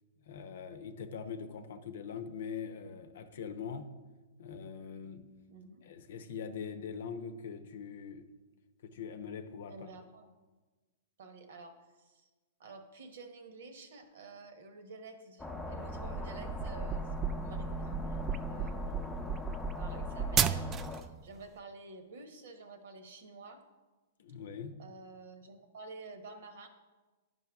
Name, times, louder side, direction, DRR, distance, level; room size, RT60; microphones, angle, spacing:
voice 1, 0.2-3.9 4.4-5.3 5.8-8.3 8.8-10.0 24.2-24.8, left 6 dB, 65° left, 9 dB, 0.8 m, -42 dB
voice 2, 5.5-5.8 9.7-10.3 11.2-12.3 12.6-18.2 18.5-19.4 19.7-23.6 24.8-26.7, right 3 dB, 70° right, 7 dB, 1.2 m, -50 dB
sound 1, 15.4-21.0, left 1 dB, 10° left, 0.8 m, -41 dB
sound 2, 15.9-21.0, right 7 dB, 25° right, 0.3 m, -34 dB
10.5 x 5.4 x 3.5 m, 1.2 s
hypercardioid pair, 115°, 0 cm